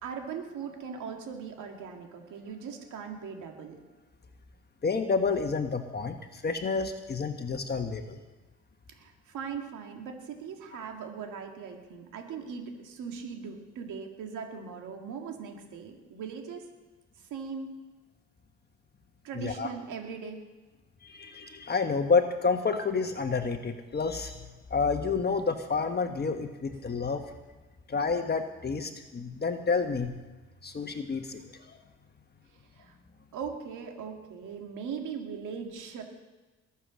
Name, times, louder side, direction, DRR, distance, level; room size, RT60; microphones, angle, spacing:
voice 1, 0.0-3.8 8.9-16.7 17.2-17.8 19.2-20.4 32.8-32.9 33.3-36.0, right 6 dB, 85° right, 2 dB, 2.3 m, -39 dB
voice 2, 4.8-8.2 19.3-19.7 21.0-27.2 27.9-30.1 30.6-31.7, left 4 dB, 35° left, 6 dB, 1.3 m, -29 dB
21.5 x 7.2 x 6.3 m, 1.2 s
cardioid pair, 90°, 30 cm